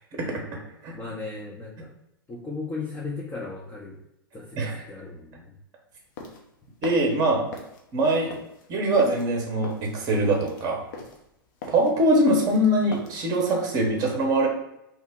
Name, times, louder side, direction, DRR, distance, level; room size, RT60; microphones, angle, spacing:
voice 1, 0.9-1.9 2.3-4.0 4.3-4.6 4.9-5.6, left 3 dB, 15° left, -4 dB, 0.6 m, -36 dB
sound 1, 5.9-13.3, left 3 dB, 50° left, 0.7 m, -41 dB
voice 2, 6.8-7.4 7.9-8.3 8.7-10.8 11.7-14.5, right 1 dB, 30° right, 1 dB, 0.8 m, -22 dB
2.9 x 2.1 x 3.5 m, 0.85 s
figure-of-eight pair, 95°, 12 cm